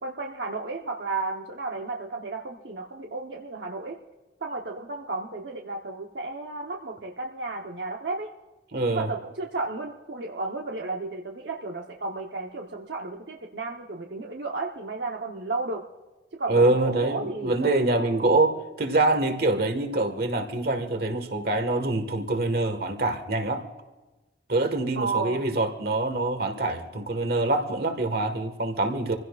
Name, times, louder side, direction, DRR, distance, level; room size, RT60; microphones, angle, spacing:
voice 1, 0.0-4.0 4.4-8.3 8.9-15.8 16.3-17.7 18.0-18.3 25.0-25.4, right 3 dB, 85° right, 1 dB, 1.0 m, -33 dB
voice 2, 8.7-9.1 16.5-23.6 24.5-29.2, right 2 dB, 60° right, 7 dB, 1.6 m, -25 dB
26.5 x 16.0 x 2.4 m, 1.2 s
head